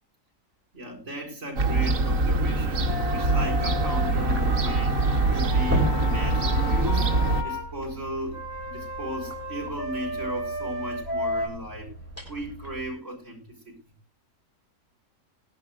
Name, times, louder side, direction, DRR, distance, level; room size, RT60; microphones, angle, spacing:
voice 1, 0.7-2.9 3.1-7.1 7.4-11.9 12.3-13.7, equal, 65° right, 5.1 m, -36 dB
Fowl / Gull seagull, 1.6-7.4, right 3 dB, 85° right, 1.7 m, -24 dB
Wind instrument woodwind instrument, 2.8-7.7 8.3-11.5, left 2 dB, 15° left, 3.4 m, -34 dB
sound 1, 4.2-12.9, equal, 10° right, 3.9 m, -36 dB
19.5 x 11.0 x 2.3 m
omnidirectional pair, 1.3 m